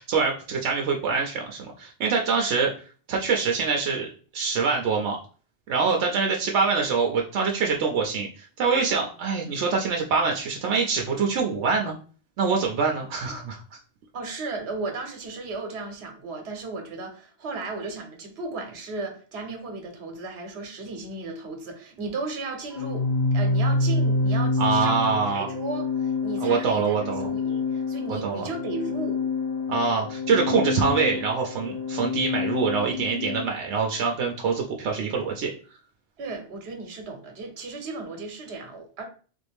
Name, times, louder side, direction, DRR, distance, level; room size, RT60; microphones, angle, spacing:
voice 1, 0.0-2.7 3.1-5.2 5.7-11.9 12.4-13.6 24.6-25.5 26.4-27.3 28.2-28.5 29.7-35.5, right 5 dB, 90° right, 1 dB, 0.9 m, -25 dB
voice 2, 14.1-29.2 36.2-39.0, right 3 dB, 70° right, 4 dB, 1.1 m, -35 dB
Organ, 22.7-33.5, left 3 dB, 50° left, 0.6 m, -27 dB
3.6 x 2.6 x 3.4 m, 0.40 s
omnidirectional pair, 1.1 m